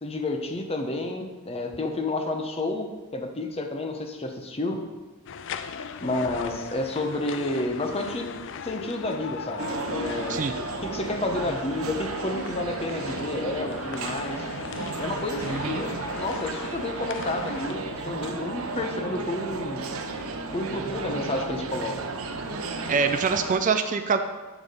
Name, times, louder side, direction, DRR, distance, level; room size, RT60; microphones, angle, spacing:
voice 1, 0.0-4.8 6.0-8.3 8.6-10.4 10.8-14.4 15.0-19.9 20.5-22.2, left 2 dB, 25° left, 4 dB, 0.8 m, -30 dB
sound 1, 5.3-17.7, left 6 dB, 60° left, 0.4 m, -38 dB
sound 2, 9.6-23.6, right 3 dB, 75° right, 0.8 m, -34 dB
voice 2, 15.5-15.8 22.9-24.2, right 5 dB, 35° right, 8 dB, 0.4 m, -24 dB
7.2 x 6.2 x 5.0 m, 1.3 s
head